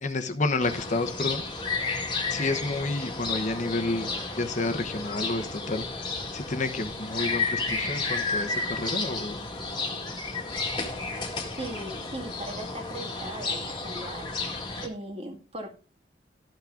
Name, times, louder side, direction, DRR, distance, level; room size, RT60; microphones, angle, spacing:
voice 1, 0.0-1.4 2.3-5.8 6.3-9.5, left 2 dB, 45° left, 7 dB, 1.0 m, -30 dB
sound 1, 0.6-14.9, left 3 dB, 25° left, 1.7 m, -32 dB
voice 2, 11.6-14.3 14.8-15.7, right 1 dB, 35° right, 3 dB, 2.1 m, -38 dB
13.0 x 6.0 x 3.8 m, 0.36 s
head